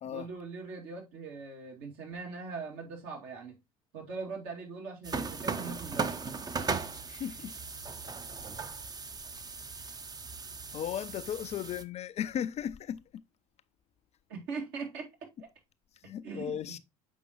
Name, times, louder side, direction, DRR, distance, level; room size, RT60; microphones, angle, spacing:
voice 1, 0.0-3.6 3.9-6.2 14.3-15.1 15.4-15.5 16.2-16.8, right 4 dB, 65° right, 2.3 m, -41 dB
sound 1, 5.0-11.8, right 4 dB, 20° right, 0.7 m, -37 dB
voice 2, 7.1-7.5 10.7-13.2 16.0-16.8, left 10 dB, 35° left, 0.4 m, -36 dB
7.2 x 5.1 x 2.9 m
figure-of-eight pair, 65°, 18 cm